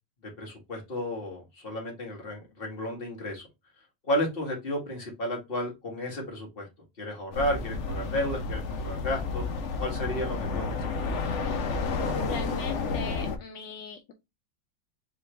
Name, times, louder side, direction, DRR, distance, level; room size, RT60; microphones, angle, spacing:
voice 1, 0.4-3.5 4.1-6.7 7.0-9.5 9.8-10.9, left 1 dB, 30° left, -1 dB, 1.9 m, -32 dB
sound 1, 7.3-13.4, left 4 dB, 60° left, 0.8 m, -31 dB
voice 2, 12.0-14.1, left 5 dB, 75° left, 5 dB, 1.3 m, -40 dB
4.8 x 3.1 x 3.2 m, 0.23 s
omnidirectional pair, 2.0 m